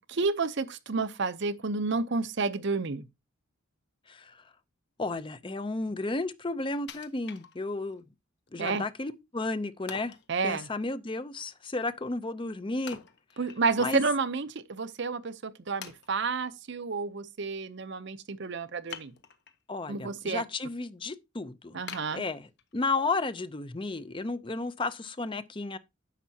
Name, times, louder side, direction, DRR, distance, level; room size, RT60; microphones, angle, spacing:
voice 1, 0.0-3.1 8.6-8.8 10.3-10.7 13.4-19.1 19.9-20.4 21.7-22.2, right 4 dB, 55° right, 0.7 m, -30 dB
voice 2, 4.1-4.4 5.0-8.0 8.5-10.2 10.4-13.0 13.8-14.0 19.7-21.8 22.1-25.8, left 3 dB, 25° left, 0.5 m, -33 dB
Wood, 6.9-8.0 8.5-8.6 9.9-10.3 12.9-14.0 14.3-14.4 15.1-15.2 15.8-16.5 18.9-19.6 20.1-20.6 21.0-21.1 21.9-22.9 23.4-23.5, left 7 dB, 55° left, 1.0 m, -46 dB
10.0 x 7.3 x 2.8 m
head